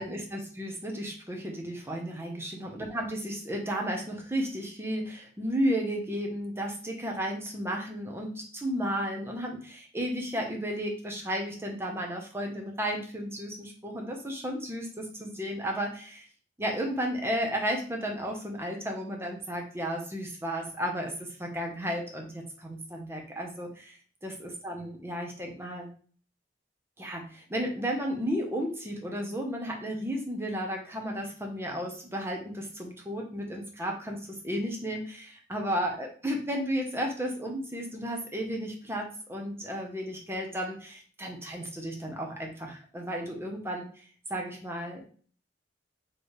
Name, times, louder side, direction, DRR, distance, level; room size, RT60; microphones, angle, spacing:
voice 1, 0.0-16.3 16.6-25.9 27.0-45.0, equal, 15° right, 1 dB, 0.8 m, -33 dB
4.6 x 3.1 x 3.1 m, 0.43 s
head